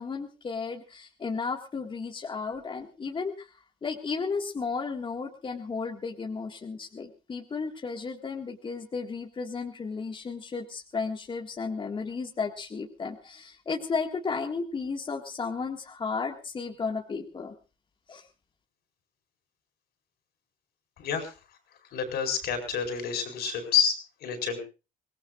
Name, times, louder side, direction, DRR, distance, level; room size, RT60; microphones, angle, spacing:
voice 1, 0.0-3.5 3.8-17.6 18.1-18.3, left 4 dB, 30° left, 3 dB, 1.8 m, -34 dB
voice 2, 21.0-21.3 21.9-24.6, left 7 dB, 70° left, 6 dB, 4.9 m, -28 dB
24.5 x 18.5 x 2.5 m, 0.32 s
cardioid pair, 110°, 17 cm